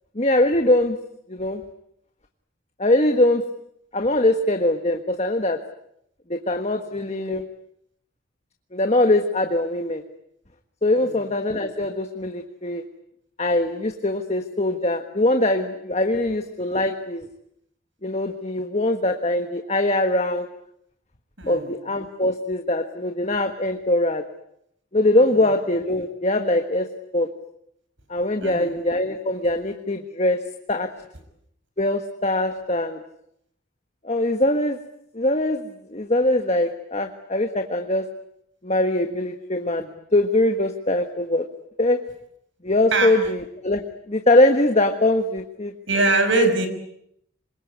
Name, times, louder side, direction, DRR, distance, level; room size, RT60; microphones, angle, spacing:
voice 1, 0.1-1.0 1.3-1.6 2.8-3.4 3.9-5.6 6.3-7.4 8.7-10.0 10.8-12.8 13.4-17.3 18.0-20.5 21.4-24.2 24.9-26.9 27.1-27.3 28.1-30.4 30.7-30.9 31.8-33.0 34.0-34.8 35.1-38.1 38.6-41.5 41.8-42.0 42.6-43.8 44.1-45.7, left 1 dB, 30° left, 5 dB, 1.5 m, -22 dB
voice 2, 21.4-21.7 28.4-28.7 42.9-43.1 45.9-46.7, right 2 dB, 65° right, 8 dB, 5.5 m, -21 dB
26.0 x 22.5 x 9.6 m, 0.74 s
head